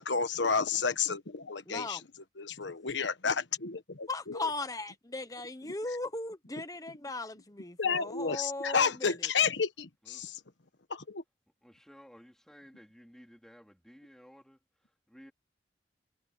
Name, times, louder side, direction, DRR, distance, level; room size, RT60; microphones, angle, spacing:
voice 1, 0.0-2.0 2.4-4.4 7.8-10.4 10.9-11.2, left 5 dB, 85° left, 1.3 m, -31 dB
voice 2, 1.7-2.0 4.1-9.3, left 2 dB, 20° left, 1.2 m, -38 dB
voice 3, 10.0-10.4 11.6-15.3, equal, 5° left, 4.0 m, -56 dB
head